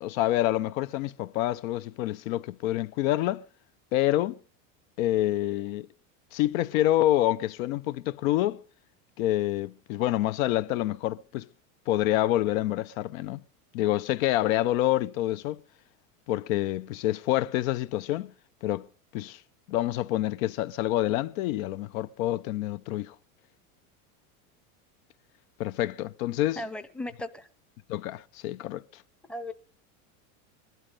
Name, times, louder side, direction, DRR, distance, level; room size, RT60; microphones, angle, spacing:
voice 1, 0.0-3.4 3.9-4.4 5.0-5.9 6.3-8.6 9.2-11.4 11.9-13.4 13.7-15.6 16.3-18.3 18.6-18.9 19.1-19.4 19.7-23.1 25.6-26.6 27.9-28.8, left 14 dB, 70° left, 0.7 m, -27 dB
voice 2, 26.6-27.5 29.3-29.5, left 1 dB, ahead, 0.6 m, -36 dB
20.5 x 12.5 x 5.3 m
supercardioid pair, 130°, 42 cm